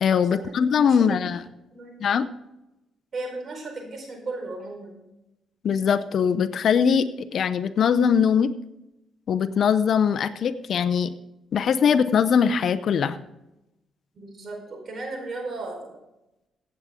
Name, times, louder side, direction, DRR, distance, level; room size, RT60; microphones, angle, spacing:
voice 1, 0.0-1.4 2.0-2.3 5.6-7.1 7.3-8.5 9.3-11.1 11.5-13.2, left 7 dB, 60° left, 14 dB, 0.7 m, -21 dB
voice 2, 3.1-4.9 14.1-16.0, right 2 dB, 50° right, 2 dB, 4.7 m, -35 dB
15.5 x 8.4 x 3.7 m, 0.92 s
cardioid pair, 90°, 0 cm